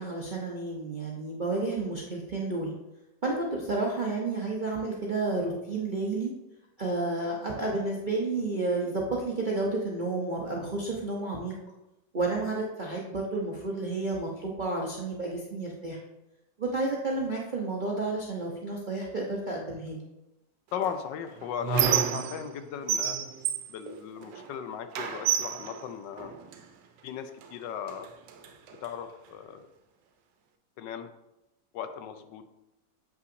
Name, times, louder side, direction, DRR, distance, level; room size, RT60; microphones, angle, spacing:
voice 1, 0.0-2.7 3.2-6.3 6.8-11.5 12.1-16.0 16.6-20.0, right 2 dB, 55° right, -3 dB, 0.5 m, -31 dB
voice 2, 20.7-23.2 23.7-26.3 27.0-28.1 28.8-29.7 30.8-31.1 31.7-32.4, left 8 dB, 80° left, 9 dB, 1.2 m, -37 dB
Squeak, 20.8-22.6 22.9-24.5 24.9-26.6 27.4-27.5 27.9-28.9, right 9 dB, 75° right, 1.2 m, -30 dB
7.8 x 5.5 x 2.6 m, 0.93 s
omnidirectional pair, 2.0 m